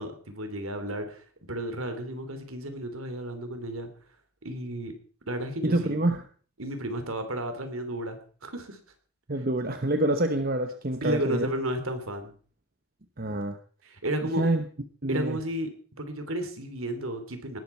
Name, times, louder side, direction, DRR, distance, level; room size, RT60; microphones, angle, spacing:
voice 1, 0.0-3.9 4.4-4.9 5.3-6.0 6.6-8.8 11.0-12.3 13.8-14.5 15.1-15.7 16.0-17.6, right 1 dB, 70° right, 8 dB, 3.2 m, -33 dB
voice 2, 5.6-6.2 9.3-11.5 13.2-13.6 14.4-14.6 15.0-15.4, right 1 dB, 40° right, 7 dB, 1.1 m, -26 dB
19.0 x 12.5 x 4.6 m, 0.43 s
head